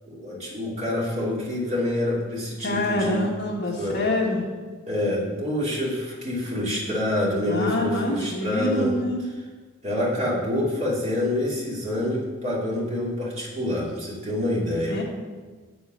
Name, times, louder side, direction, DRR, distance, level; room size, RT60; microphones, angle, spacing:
voice 1, 0.1-3.2 3.8-4.1 4.9-8.9 9.8-15.0, left 1 dB, 30° right, -6 dB, 2.8 m, -27 dB
voice 2, 2.6-4.4 7.5-9.2 14.9-15.0, left 1 dB, 45° left, -1 dB, 1.7 m, -26 dB
8.0 x 8.0 x 6.3 m, 1.4 s
head